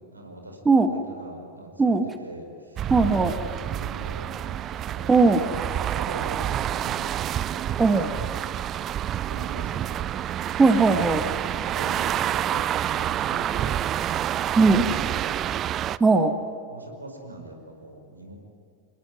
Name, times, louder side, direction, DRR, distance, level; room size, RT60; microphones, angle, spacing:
voice 1, 0.0-0.6 0.8-1.7 2.2-2.5 3.7-5.2 5.8-7.9 9.3-10.1 11.2-14.5 16.7-18.4, right 1 dB, 80° right, 3 dB, 5.1 m, -42 dB
sound 1, 2.8-16.0, right 11 dB, 30° right, 0.6 m, -28 dB
voice 2, 2.9-3.3 5.1-5.4 7.8-8.1 10.6-11.2 14.6-14.9 16.0-16.3, right 3 dB, 15° right, 7 dB, 1.8 m, -18 dB
28.0 x 20.5 x 9.8 m, 2.5 s
figure-of-eight pair, 90°, 0 cm